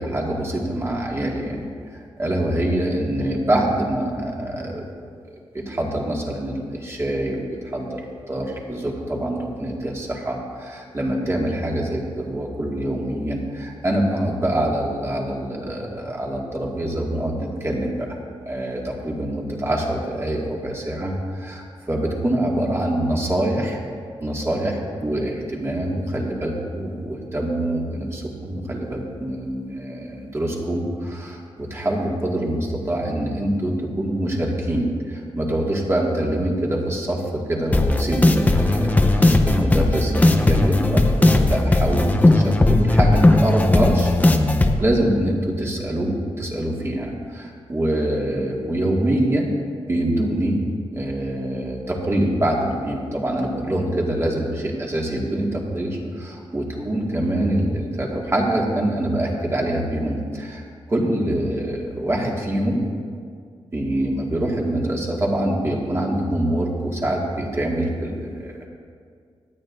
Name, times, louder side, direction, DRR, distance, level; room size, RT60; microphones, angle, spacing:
voice 1, 0.0-1.6 1.9-4.9 5.3-5.4 5.7-8.0 8.3-18.1 18.5-23.8 24.2-44.1 44.8-49.5 49.9-50.6 50.9-62.8 63.7-68.5, right 1 dB, 25° right, -2 dB, 2.1 m, -25 dB
sound 1, 37.7-44.7, left 2 dB, 15° left, 0.8 m, -17 dB
24.5 x 8.9 x 2.7 m, 2.1 s
wide cardioid pair, 115°, 10 cm